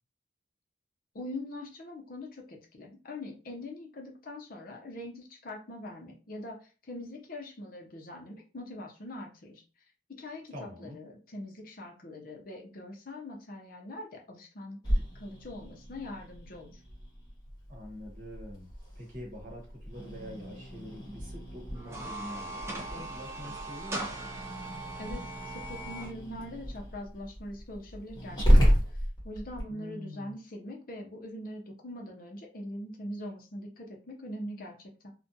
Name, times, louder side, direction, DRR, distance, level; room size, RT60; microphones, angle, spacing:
voice 1, 1.1-9.6 10.1-16.8 25.0-35.1, left 1 dB, 45° left, 1 dB, 0.6 m, -43 dB
voice 2, 10.5-11.0 17.7-24.1 29.7-30.4, left 1 dB, 45° right, -1 dB, 1.0 m, -45 dB
Growling, 14.8-29.6, equal, 20° left, 1.1 m, -31 dB
sound 1, 21.7-26.1, right 2 dB, 15° right, 0.3 m, -39 dB
2.4 x 2.2 x 2.7 m, 0.34 s
head